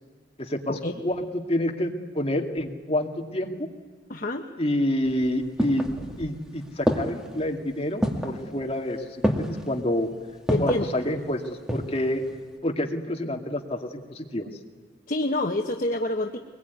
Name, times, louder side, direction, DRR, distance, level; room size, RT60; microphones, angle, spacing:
voice 1, 0.4-3.5 4.6-5.9 6.2-10.1 10.6-12.2 12.6-14.5, left 1 dB, 35° left, 2 dB, 2.4 m, -28 dB
voice 2, 4.1-4.5 10.5-10.9 15.1-16.4, left 1 dB, 50° left, 3 dB, 1.2 m, -27 dB
sound 1, 5.1-6.4 6.9-7.4 8.0-8.4 9.2-9.7 10.5-10.9 11.4-12.0 12.3-12.4, equal, 5° right, 2.2 m, -26 dB
24.0 x 21.5 x 9.6 m, 1.5 s
head